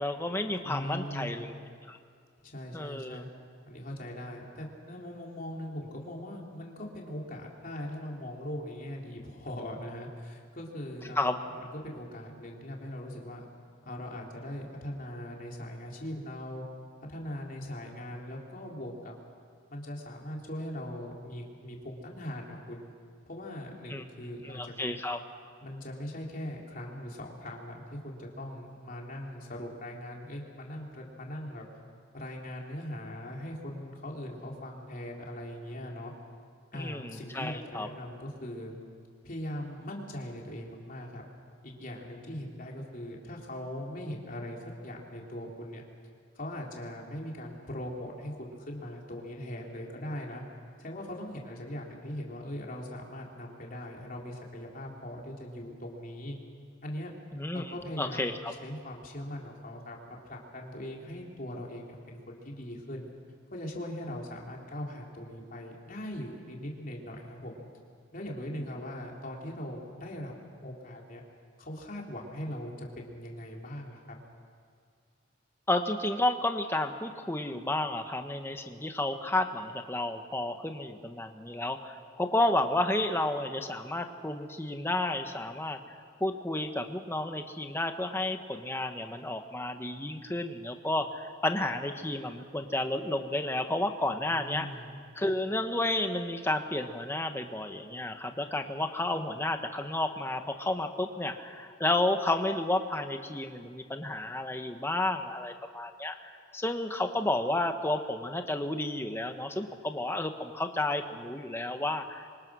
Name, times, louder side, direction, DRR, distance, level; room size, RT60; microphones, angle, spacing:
voice 1, 0.0-1.5 1.9-2.0 2.7-3.2 11.2-11.4 23.9-24.0 24.4-25.2 36.7-37.9 57.3-57.6 58.0-58.5 75.7-94.7 95.1-112.3, left 1 dB, 10° left, 6 dB, 1.3 m, -31 dB
voice 2, 0.6-1.5 2.4-3.3 3.7-13.5 13.8-16.7 17.1-19.1 19.7-22.9 23.3-25.0 25.6-31.6 32.1-36.1 36.7-38.7 39.2-41.3 41.6-45.8 46.4-50.4 50.8-56.4 56.8-57.1 57.5-58.3 58.6-63.1 63.5-67.6 68.1-70.3 70.6-71.2 71.6-74.2 94.2-94.9, left 1 dB, 45° left, -1 dB, 3.6 m, -40 dB
27.5 x 24.5 x 6.3 m, 2.2 s
head